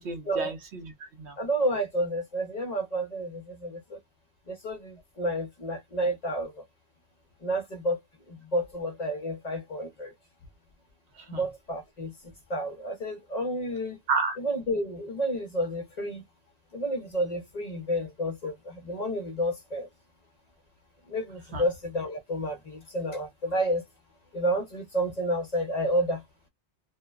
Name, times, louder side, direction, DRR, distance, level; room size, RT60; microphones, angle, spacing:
voice 1, 0.0-1.4 11.2-11.4 14.1-14.4 21.5-21.6, right 4 dB, 80° right, 1.1 m, -31 dB
voice 2, 1.4-4.0 4.5-6.6 7.4-8.0 8.3-10.1 11.3-14.0 14.4-16.2 16.7-19.9 21.1-23.8 24.3-26.2, right 1 dB, 45° left, 0.6 m, -30 dB
2.6 x 2.0 x 2.3 m
omnidirectional pair, 1.1 m